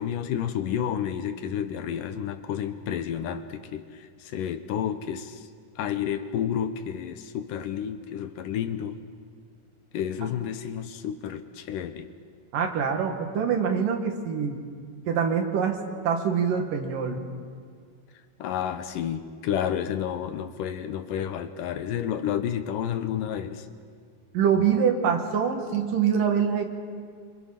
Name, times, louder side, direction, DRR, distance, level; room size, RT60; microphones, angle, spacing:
voice 1, 0.0-5.5 5.8-9.0 9.9-12.1 18.4-23.7, left 9 dB, 75° left, 9 dB, 2.4 m, -30 dB
voice 2, 12.5-14.6 15.1-15.8 16.0-17.2 24.3-26.6, right 7 dB, 70° right, 4 dB, 3.4 m, -24 dB
26.5 x 26.0 x 5.8 m, 2.1 s
omnidirectional pair, 4.1 m